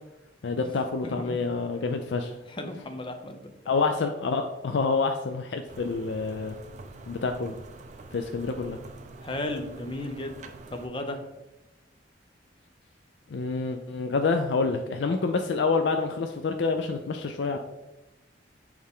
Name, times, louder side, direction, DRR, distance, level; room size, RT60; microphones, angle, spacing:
voice 1, 0.4-2.3 3.7-6.6 7.1-7.5 8.1-8.8 13.3-17.6, left 4 dB, 70° left, 6 dB, 0.4 m, -27 dB
voice 2, 1.0-1.4 2.5-3.5 9.2-11.2, left 1 dB, 30° left, 6 dB, 0.7 m, -35 dB
sound 1, 5.7-10.9, right 3 dB, 40° right, 0.5 m, -46 dB
6.5 x 4.6 x 3.6 m, 0.97 s
head